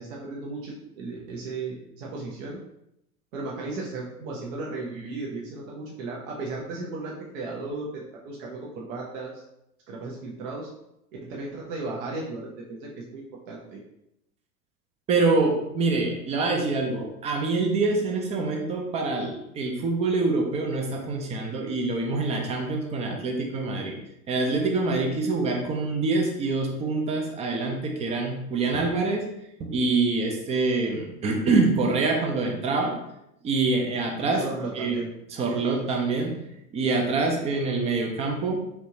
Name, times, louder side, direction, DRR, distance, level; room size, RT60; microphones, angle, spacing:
voice 1, 0.0-2.6 3.3-9.4 9.9-10.7 11.2-13.8 34.2-35.1, right 3 dB, 55° right, -3 dB, 0.9 m, -35 dB
voice 2, 15.1-24.0 24.3-29.2 29.6-33.0 33.4-34.4 34.8-34.9 35.3-36.4 36.7-38.6, right 3 dB, 15° right, 2 dB, 0.3 m, -25 dB
3.3 x 3.0 x 2.7 m, 0.82 s
figure-of-eight pair, 90°, 46 cm